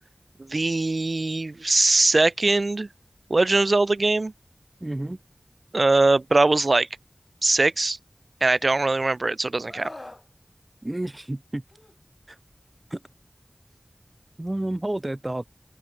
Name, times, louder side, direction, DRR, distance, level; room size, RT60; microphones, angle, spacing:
voice 1, 0.5-2.9 3.3-4.3 5.7-6.9 7.4-8.0 8.4-9.9, right 2 dB, 65° right, 0.7 m, -21 dB
voice 2, 4.8-5.2 10.8-11.6 12.3-12.4 12.9-13.0 14.4-15.4, right 1 dB, 30° right, 1.9 m, -30 dB
Screaming, 9.7-10.2 11.7-11.9, left 2 dB, 40° left, 2.8 m, -41 dB
wide cardioid pair, 45°, 0 cm